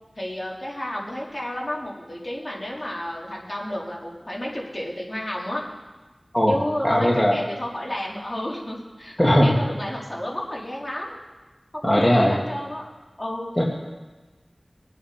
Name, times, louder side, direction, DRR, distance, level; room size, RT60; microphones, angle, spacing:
voice 1, 0.2-5.6 6.5-11.2 11.9-12.9 13.2-13.7, left 1 dB, 35° left, -4 dB, 4.2 m, -31 dB
voice 2, 6.8-7.4 9.2-9.5 11.8-12.4 13.6-13.7, equal, 15° left, -4 dB, 2.5 m, -18 dB
23.5 x 8.9 x 5.2 m, 1.2 s
wide cardioid pair, 45°, 0 cm